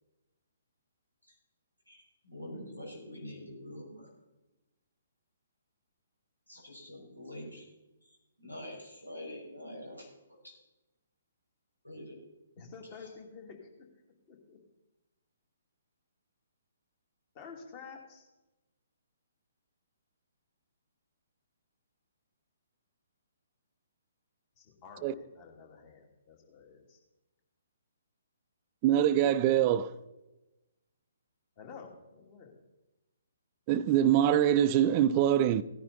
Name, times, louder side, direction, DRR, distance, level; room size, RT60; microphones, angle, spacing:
voice 1, 1.9-4.1 6.5-7.6 8.4-10.1 10.4-10.5 11.8-12.2, left 1 dB, 90° left, 5.9 m, -45 dB
voice 2, 12.5-13.9 14.3-14.6 17.3-18.3 24.6-27.0 31.6-32.5, left 5 dB, 35° left, 2.6 m, -50 dB
voice 3, 28.8-29.9 33.7-35.6, right 11 dB, 30° right, 0.5 m, -24 dB
16.5 x 10.5 x 4.1 m
figure-of-eight pair, 130°, 0 cm